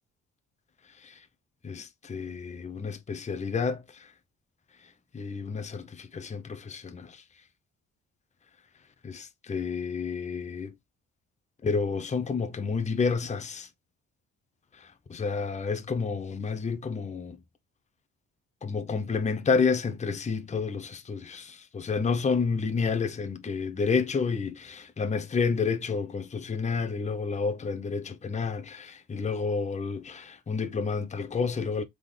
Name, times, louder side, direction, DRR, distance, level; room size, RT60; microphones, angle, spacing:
voice 1, 1.6-3.8 5.1-7.2 9.0-10.7 11.6-13.7 14.8-17.4 18.6-31.8, left 5 dB, 25° left, 0.7 m, -30 dB
3.8 x 3.7 x 3.3 m
cardioid pair, 90°, 30 cm